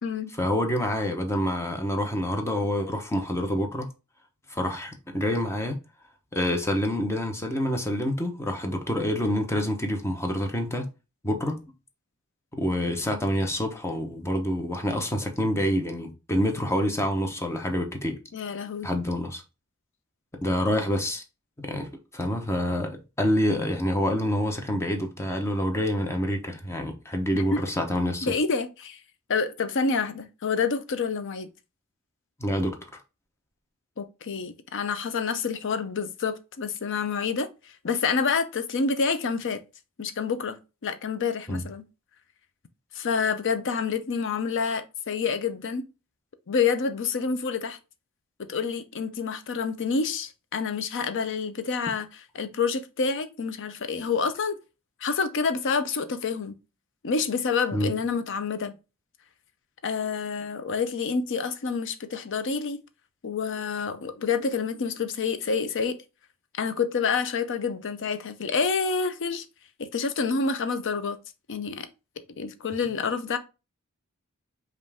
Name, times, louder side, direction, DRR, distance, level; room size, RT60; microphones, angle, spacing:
voice 1, 0.4-3.9 4.5-5.8 6.3-10.9 11.2-11.6 12.5-18.2 18.8-19.4 20.4-21.2 21.6-21.9 22.1-28.3 32.4-32.8 41.5-41.6 57.7-57.9, equal, 10° left, 0.8 m, -27 dB
voice 2, 18.3-18.9 27.3-27.6 28.2-29.0 29.3-31.5 34.0-37.5 37.8-39.6 40.0-41.8 42.9-45.8 46.5-47.8 48.5-52.1 52.3-54.6 55.0-56.5 57.0-58.7 59.8-62.8 63.2-66.0 66.5-69.5 69.8-71.2 71.5-71.9 72.4-73.4, left 5 dB, 60° left, 0.6 m, -28 dB
5.3 x 2.6 x 3.4 m
head